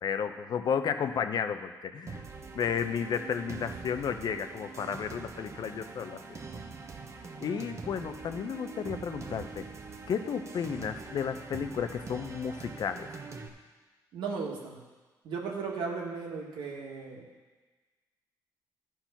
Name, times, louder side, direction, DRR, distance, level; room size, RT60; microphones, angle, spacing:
voice 1, 0.0-2.2 2.5-6.4 7.4-9.7 10.1-13.2, left 7 dB, 60° left, 8 dB, 0.6 m, -33 dB
sound 1, 2.1-13.5, right 4 dB, 35° right, 1.0 m, -44 dB
voice 2, 14.1-14.8 15.2-17.2, right 5 dB, 85° right, -1 dB, 1.9 m, -36 dB
13.0 x 4.6 x 5.9 m, 1.3 s
cardioid pair, 90°, 8 cm